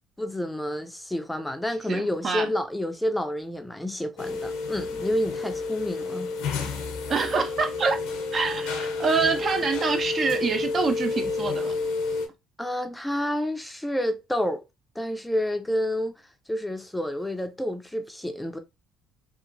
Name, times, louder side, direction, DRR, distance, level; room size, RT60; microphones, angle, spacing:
voice 1, 0.2-6.3 12.6-14.6 15.0-16.1 16.5-18.6, left 1 dB, 5° left, 0.5 m, -29 dB
voice 2, 1.9-2.5 7.1-8.0 8.3-11.7, right 4 dB, 45° right, 0.5 m, -26 dB
sound 1, 4.2-12.3, left 4 dB, 70° left, 0.7 m, -30 dB
2.8 x 2.5 x 2.5 m
hypercardioid pair, 60°, 0 cm